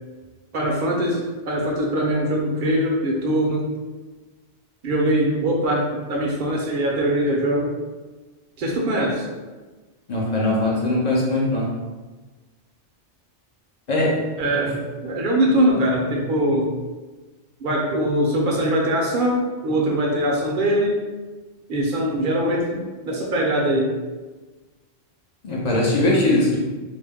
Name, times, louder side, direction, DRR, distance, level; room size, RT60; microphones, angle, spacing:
voice 1, 0.5-3.7 4.8-7.7 8.6-9.3 14.4-16.7 17.6-21.0 21.7-24.0, right 1 dB, 55° right, -1 dB, 0.7 m, -22 dB
voice 2, 10.1-11.7 13.9-14.2 25.4-26.6, left 1 dB, 45° left, -4 dB, 0.6 m, -20 dB
2.5 x 2.1 x 3.4 m, 1.3 s
omnidirectional pair, 1.2 m